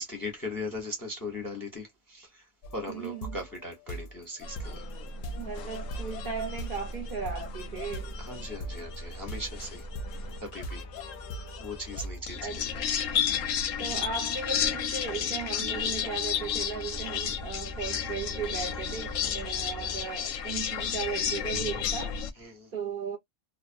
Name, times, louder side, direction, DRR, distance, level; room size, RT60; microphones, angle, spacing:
voice 1, 0.0-2.4 2.7-4.8 8.2-9.9 10.4-10.8 11.6-12.8 19.2-19.3 22.4-22.7, left 2 dB, 20° left, 0.6 m, -39 dB
sound 1, 2.6-12.2, equal, 60° left, 0.6 m, -42 dB
voice 2, 2.9-3.4 5.4-8.2 12.4-12.7 13.8-23.2, right 6 dB, 50° right, 0.7 m, -37 dB
sound 2, 4.4-22.3, left 8 dB, 85° left, 1.0 m, -33 dB
sound 3, 5.5-20.0, right 1 dB, 20° right, 0.8 m, -45 dB
2.5 x 2.1 x 2.5 m
omnidirectional pair, 1.3 m